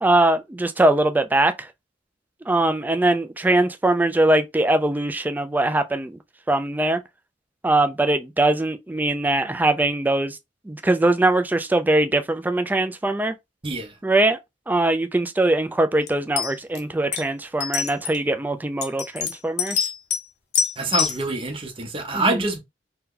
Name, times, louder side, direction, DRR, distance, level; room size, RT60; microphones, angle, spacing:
voice 1, 0.0-1.7 2.5-6.2 6.5-7.0 7.6-10.4 10.7-13.3 14.0-14.4 14.7-19.9 22.1-22.4, right 2 dB, 10° right, 0.3 m, -21 dB
voice 2, 13.6-13.9 20.8-22.6, right 2 dB, 30° right, 0.8 m, -25 dB
sound 1, 16.1-16.2 16.4-16.8 17.1-17.2 17.6-18.2 18.8-20.2 20.5-21.2, left 7 dB, 60° left, 0.7 m, -24 dB
2.8 x 2.2 x 3.7 m
head